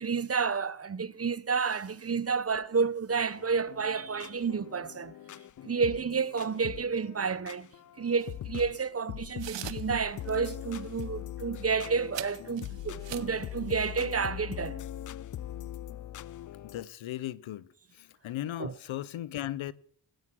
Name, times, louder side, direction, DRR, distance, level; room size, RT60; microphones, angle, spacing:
voice 1, 0.0-5.1 5.6-7.7 8.0-14.8 18.6-18.7, right 5 dB, 30° right, 0.8 m, -30 dB
sound 1, 3.3-16.9, left 12 dB, 45° left, 0.4 m, -42 dB
sound 2, 8.2-8.3 9.4-10.0 10.2-10.4 10.8-11.1 12.1-13.4, right 11 dB, 65° right, 0.9 m, -42 dB
voice 2, 16.6-17.7 17.9-19.7, left 13 dB, 75° left, 0.7 m, -37 dB
15.5 x 9.4 x 6.0 m
cardioid pair, 65°, 47 cm